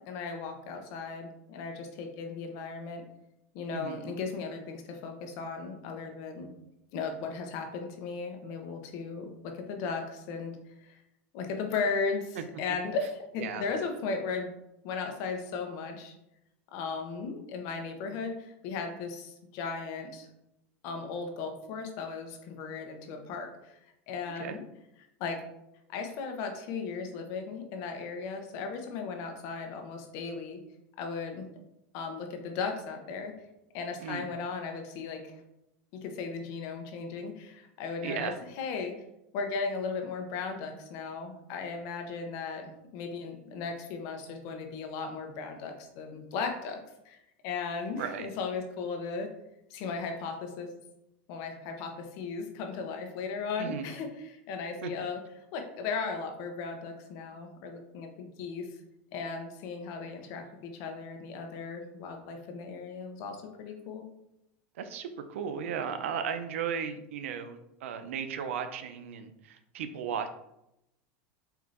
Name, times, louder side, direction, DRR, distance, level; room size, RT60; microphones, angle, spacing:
voice 1, 0.1-3.0 3.5-6.5 6.9-11.0 11.3-14.5 14.8-16.1 16.7-20.3 20.8-23.8 24.1-24.6 25.2-25.4 25.9-30.6 31.0-31.5 31.9-33.3 33.7-35.4 35.9-38.9 39.3-47.2 47.4-49.3 49.7-50.7 51.3-55.2 55.5-58.7 59.1-64.0, left 4 dB, 55° left, 5 dB, 0.8 m, -36 dB
voice 2, 38.0-38.4 48.0-48.3 53.6-53.9 54.8-54.9 64.8-70.3, right 7 dB, 90° right, 9 dB, 0.5 m, -35 dB
4.4 x 3.7 x 2.6 m, 0.83 s
supercardioid pair, 130°, 7 cm